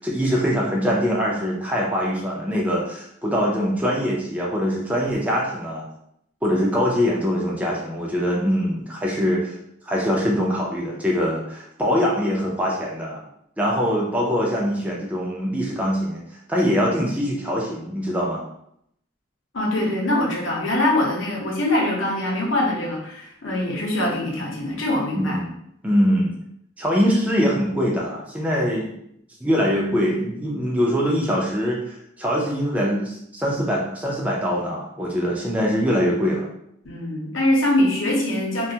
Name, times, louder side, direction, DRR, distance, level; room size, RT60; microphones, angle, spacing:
voice 1, 0.0-5.8 6.4-9.6 9.8-13.2 13.6-16.2 16.5-18.4 25.1-25.5 25.8-26.4 26.8-28.9 29.4-36.5, equal, 5° right, -4 dB, 0.4 m, -23 dB
voice 2, 19.5-25.4 36.8-38.7, left 1 dB, 80° left, -2 dB, 0.8 m, -23 dB
2.5 x 2.3 x 2.7 m, 0.73 s
head